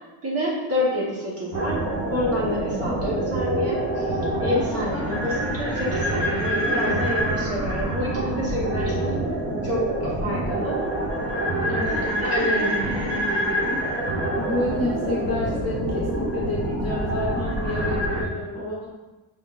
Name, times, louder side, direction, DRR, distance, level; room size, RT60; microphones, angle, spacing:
voice 1, 0.2-1.8 2.1-9.2 9.6-10.8 11.9-13.3, left 1 dB, 30° right, -5 dB, 1.2 m, -28 dB
sound 1, 1.5-18.2, right 1 dB, 80° right, 1.4 m, -26 dB
voice 2, 11.7-12.0 14.4-18.9, left 1 dB, 35° left, -4 dB, 0.8 m, -29 dB
5.1 x 3.6 x 2.4 m, 1.1 s
cardioid pair, 170°, 45 cm